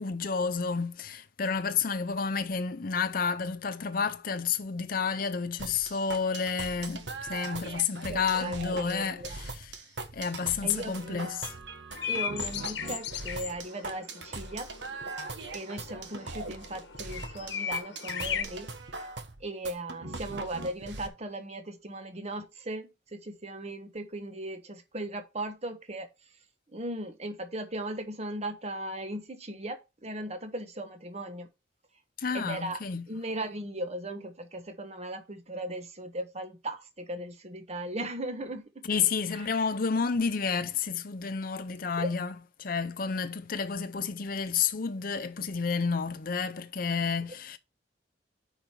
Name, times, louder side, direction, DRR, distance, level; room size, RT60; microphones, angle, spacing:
voice 1, 0.0-9.8 10.1-11.6 32.2-33.1 38.8-47.6, left 5 dB, 55° left, 0.7 m, -30 dB
sound 1, 5.6-21.1, right 3 dB, 80° right, 1.3 m, -40 dB
voice 2, 8.1-9.4 10.6-11.3 12.1-14.7 15.5-18.7 19.4-26.1 26.7-31.5 32.3-32.8 33.1-38.9 39.4-39.5 42.0-42.1, right 1 dB, 40° right, 1.3 m, -37 dB
sound 2, 11.9-18.4, left 8 dB, 85° left, 1.1 m, -37 dB
8.9 x 5.1 x 4.5 m
head